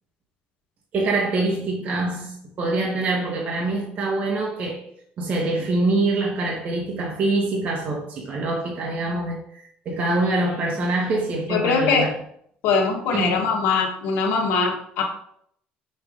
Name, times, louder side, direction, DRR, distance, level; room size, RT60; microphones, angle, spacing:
voice 1, 0.9-4.8 5.2-12.1 13.1-13.5, right 2 dB, 45° right, 1.3 m, -25 dB
voice 2, 11.5-12.1 12.6-15.0, left 5 dB, 75° left, 1.6 m, -22 dB
6.0 x 3.3 x 5.0 m
cardioid pair, 120°, 4 cm